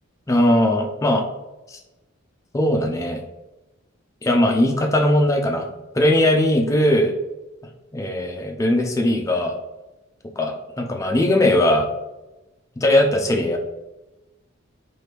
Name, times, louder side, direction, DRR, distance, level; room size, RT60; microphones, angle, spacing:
voice 1, 0.3-1.2 1.7-1.8 2.5-3.2 4.2-5.7 5.9-7.1 7.9-9.6 10.4-11.9 12.8-13.6, left 1 dB, 15° left, 2 dB, 0.3 m, -19 dB
3.0 x 2.5 x 3.2 m, 1.0 s
head